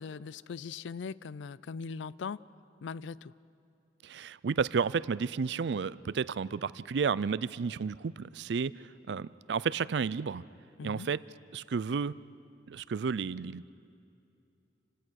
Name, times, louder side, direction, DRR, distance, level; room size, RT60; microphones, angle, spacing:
voice 1, 0.0-2.4 2.8-3.3 10.8-11.1, left 5 dB, 85° left, 20 dB, 0.4 m, -40 dB
voice 2, 4.0-10.4 10.8-11.2 11.5-12.2 12.7-13.7, right 5 dB, 65° right, 19 dB, 0.4 m, -32 dB
27.5 x 17.5 x 6.3 m, 2.6 s
head